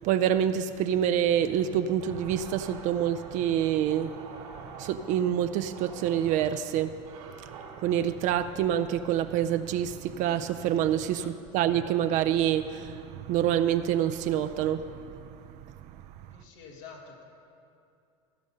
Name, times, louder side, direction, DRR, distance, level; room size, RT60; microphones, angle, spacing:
voice 1, 0.0-4.2 4.8-7.0 7.4-7.5 7.8-15.1, right 10 dB, 50° right, 10 dB, 0.4 m, -27 dB
sound 1, 2.0-10.2, right 4 dB, 85° right, 2.1 m, -48 dB
voice 2, 16.3-17.2, left 5 dB, 80° left, 1 dB, 2.0 m, -48 dB
15.5 x 5.2 x 6.7 m, 2.6 s
supercardioid pair, 120°, 17 cm